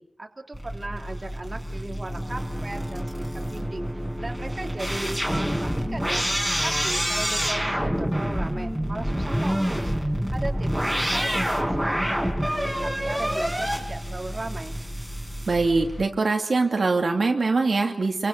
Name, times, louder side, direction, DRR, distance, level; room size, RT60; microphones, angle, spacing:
voice 1, 0.2-6.2 6.6-9.9 10.3-14.8, right 2 dB, 35° right, 3 dB, 3.0 m, -37 dB
sound 1, 0.5-16.1, equal, ahead, 4.9 m, -27 dB
voice 2, 15.5-18.3, right 3 dB, 65° right, 2 dB, 2.9 m, -23 dB
28.0 x 24.5 x 7.0 m, 0.72 s
wide cardioid pair, 95°, 0 cm